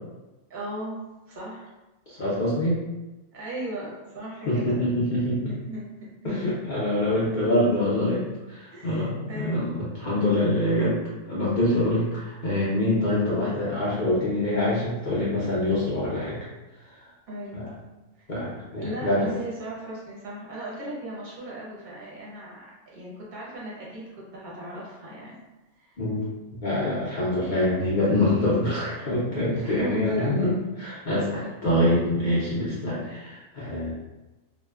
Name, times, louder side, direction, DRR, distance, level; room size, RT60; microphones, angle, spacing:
voice 1, 0.5-1.7 3.3-4.8 5.4-6.6 8.7-9.7 17.3-17.8 18.2-18.3 18.8-22.7 22.9-24.0 24.3-25.4 25.8-26.0 29.5-30.6 31.4-31.5, right 1 dB, 45° right, -5 dB, 0.6 m, -37 dB
voice 2, 2.1-2.8 4.5-5.4 6.2-8.2 8.5-11.0 11.3-16.4 17.5-17.6 18.3-19.3 26.0-26.2 26.6-33.9, left 1 dB, 70° left, -9 dB, 0.4 m, -25 dB
2.9 x 2.1 x 2.2 m, 1.1 s
omnidirectional pair, 1.6 m